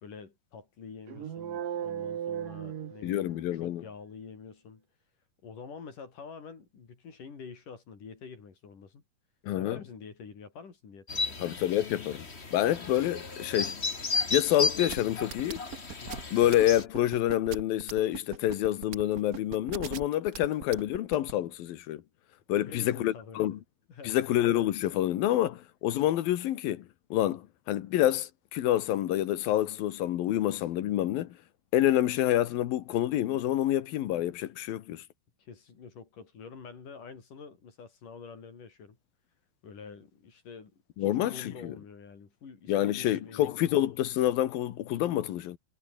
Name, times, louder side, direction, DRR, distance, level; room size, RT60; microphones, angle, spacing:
voice 1, 0.0-4.9 5.4-9.0 9.5-11.4 16.0-16.3 22.6-23.6 23.9-24.2 35.4-39.0 39.6-43.6, left 5 dB, 60° left, 5.7 m, -47 dB
sound 1, 1.1-3.6, right 9 dB, 70° right, 3.7 m, -36 dB
voice 2, 3.0-3.8 9.4-9.8 11.4-13.8 14.3-15.6 16.3-22.0 22.5-23.6 24.0-31.4 31.7-35.0 41.0-41.7 42.7-45.6, left 13 dB, 80° left, 3.1 m, -28 dB
sound 2, 11.1-16.8, left 4 dB, 25° left, 1.8 m, -34 dB
sound 3, 14.9-21.3, right 7 dB, 90° right, 0.8 m, -39 dB
omnidirectional pair, 4.2 m